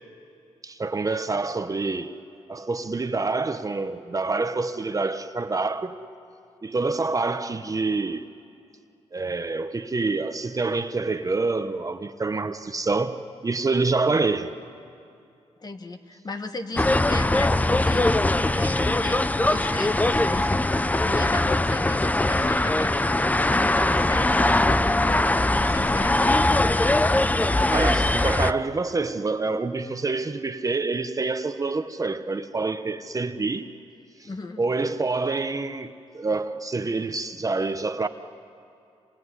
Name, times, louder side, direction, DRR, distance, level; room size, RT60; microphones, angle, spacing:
voice 1, 0.6-2.1 2.5-6.0 6.6-8.2 9.1-14.5 27.7-33.7 34.2-34.3 34.6-38.1, right 3 dB, 30° right, 1.1 m, -27 dB
voice 2, 15.6-18.2 18.5-26.8 34.2-34.6, left 3 dB, 35° left, 1.9 m, -37 dB
sound 1, 16.8-28.5, left 2 dB, 15° left, 0.7 m, -21 dB
27.0 x 23.0 x 9.8 m
cardioid pair, 75°, 12 cm